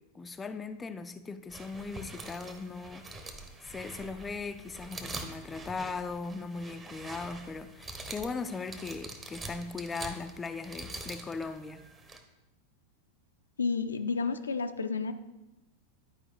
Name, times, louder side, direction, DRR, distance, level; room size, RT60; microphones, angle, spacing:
voice 1, 0.0-3.4 3.6-11.9, left 4 dB, 15° left, 9 dB, 0.4 m, -39 dB
sound 1, 1.5-12.2, right 2 dB, 20° right, 1.0 m, -45 dB
voice 2, 13.6-15.1, left 4 dB, 75° left, 8 dB, 0.5 m, -31 dB
10.5 x 4.8 x 5.0 m, 0.98 s
figure-of-eight pair, 90°, 0 cm